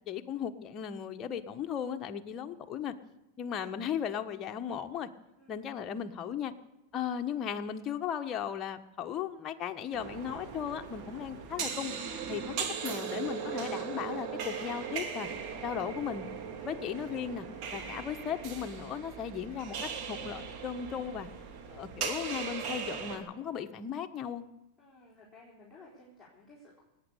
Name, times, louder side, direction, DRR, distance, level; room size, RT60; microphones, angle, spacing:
voice 1, 0.1-2.9 3.4-5.1 5.5-6.5 6.9-11.9 12.3-12.4 12.8-15.3 15.6-16.3 16.6-17.5 17.7-21.3 21.7-24.4, left 8 dB, 35° left, 6 dB, 1.3 m, -36 dB
sound 1, 9.9-23.2, right 6 dB, 50° right, 2.7 m, -38 dB
voice 2, 24.8-26.8, left 2 dB, 10° left, -6 dB, 4.2 m, -56 dB
18.5 x 9.1 x 8.5 m, 0.94 s
hypercardioid pair, 115°, 0 cm